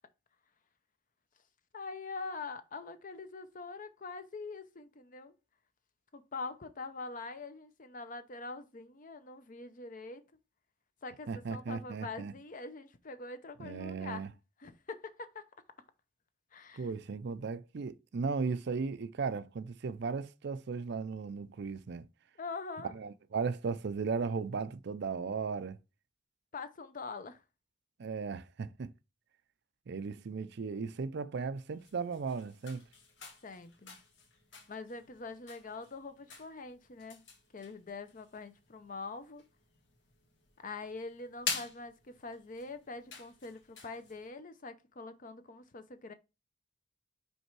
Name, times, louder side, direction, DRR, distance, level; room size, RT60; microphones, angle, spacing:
voice 1, 1.7-5.3 6.1-10.2 11.0-14.3 14.6-15.4 16.5-16.9 22.4-22.9 26.5-27.4 33.4-34.0 34.7-37.2 37.5-39.4 40.6-46.1, left 3 dB, 45° left, 0.7 m, -44 dB
voice 2, 11.3-12.3 13.6-14.3 16.7-22.1 22.9-25.8 28.0-28.9 29.9-32.8, right 5 dB, 65° right, 0.5 m, -36 dB
sound 1, 31.7-44.3, left 5 dB, 80° left, 1.6 m, -47 dB
5.4 x 4.2 x 4.6 m
head